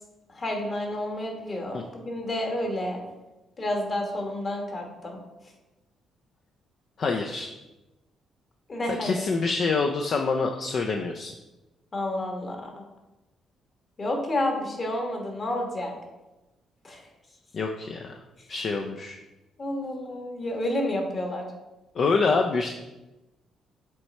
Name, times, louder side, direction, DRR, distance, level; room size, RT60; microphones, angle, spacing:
voice 1, 0.3-3.0 3.6-5.2 8.7-9.3 11.9-12.8 14.0-15.9 16.8-17.0 19.6-21.4, left 1 dB, 35° left, 1 dB, 1.5 m, -30 dB
voice 2, 7.0-7.5 9.0-11.3 17.5-18.2 18.5-19.2 22.0-22.7, left 4 dB, 55° left, 3 dB, 0.5 m, -26 dB
7.5 x 3.3 x 4.2 m, 1.0 s
cardioid pair, 90°, 0 cm